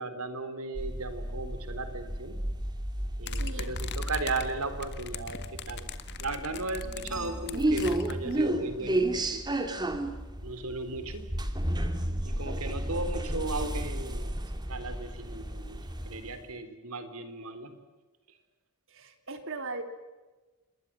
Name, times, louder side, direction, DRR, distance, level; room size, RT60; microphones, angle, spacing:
voice 1, 0.0-2.4 3.2-5.9 6.2-9.6 10.4-11.3 12.2-14.4 14.7-15.8 16.1-17.7, right 3 dB, 85° right, 10 dB, 3.8 m, -36 dB
sound 1, 0.8-16.4, right 1 dB, 20° right, 2.5 m, -33 dB
sound 2, 3.3-8.4, left 6 dB, 55° left, 1.8 m, -41 dB
voice 2, 3.3-3.8 12.0-12.4 18.9-19.8, right 3 dB, 65° right, 7 dB, 3.6 m, -40 dB
28.0 x 22.0 x 7.6 m, 1.2 s
head